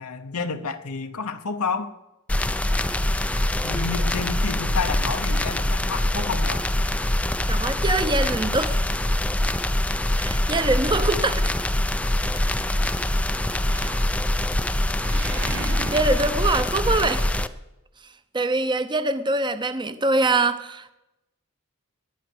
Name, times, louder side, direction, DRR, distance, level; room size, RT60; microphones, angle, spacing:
voice 1, 0.0-1.9 3.6-6.6, left 4 dB, 75° left, 6 dB, 0.9 m, -30 dB
sound 1, 2.3-17.5, left 1 dB, 5° left, 0.5 m, -24 dB
voice 2, 7.5-8.9 10.2-11.5 15.1-15.2 15.5-17.3 18.3-20.9, right 2 dB, 20° right, 11 dB, 0.8 m, -24 dB
Animal, 12.3-13.1 13.6-14.4 14.7-17.6, right 3 dB, 55° right, 1.7 m, -38 dB
20.5 x 9.2 x 6.2 m, 0.97 s
head